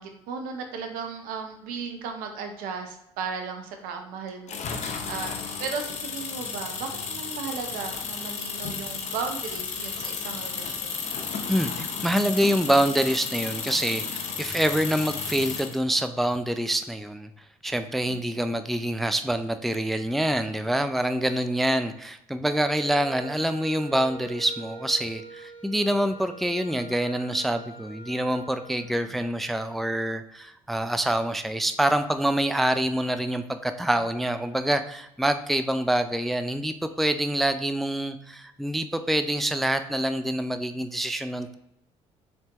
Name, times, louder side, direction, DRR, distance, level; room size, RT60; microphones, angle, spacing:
voice 1, 0.0-4.6 5.1-11.0 18.1-18.4, right 5 dB, 70° right, 4 dB, 0.7 m, -36 dB
sound 1, 4.5-15.8, left 5 dB, 50° left, 0.7 m, -33 dB
voice 2, 11.5-17.3 17.6-41.6, right 1 dB, ahead, 9 dB, 0.3 m, -26 dB
Wind instrument woodwind instrument, 22.4-28.9, right 2 dB, 35° right, 1.6 m, -44 dB
4.2 x 3.4 x 2.9 m, 0.80 s
hypercardioid pair, 50°, 15 cm